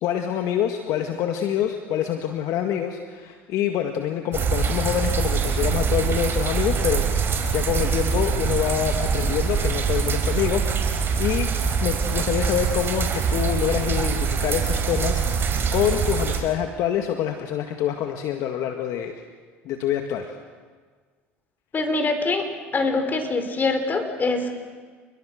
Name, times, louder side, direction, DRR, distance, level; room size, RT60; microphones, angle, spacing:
voice 1, 0.0-11.6 11.8-19.1 19.7-20.3, left 9 dB, 60° left, 5 dB, 1.9 m, -26 dB
sound 1, 4.3-16.4, right 6 dB, 40° right, 5.3 m, -24 dB
voice 2, 21.7-22.5 22.7-24.5, left 3 dB, 30° left, 7 dB, 4.7 m, -24 dB
30.0 x 21.5 x 6.5 m, 1.5 s
hypercardioid pair, 85°, 6 cm